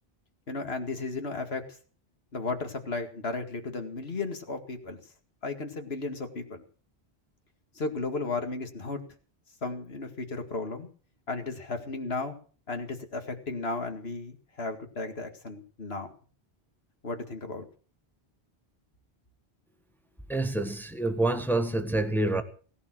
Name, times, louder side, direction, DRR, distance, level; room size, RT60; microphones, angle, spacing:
voice 1, 0.5-1.6 2.3-5.0 5.4-6.6 7.8-9.0 9.6-10.9 11.3-12.4 12.7-16.1 17.0-17.7, left 3 dB, 70° left, 2.4 m, -34 dB
voice 2, 20.3-22.4, right 2 dB, ahead, 1.3 m, -27 dB
17.5 x 11.0 x 6.2 m
omnidirectional pair, 1.1 m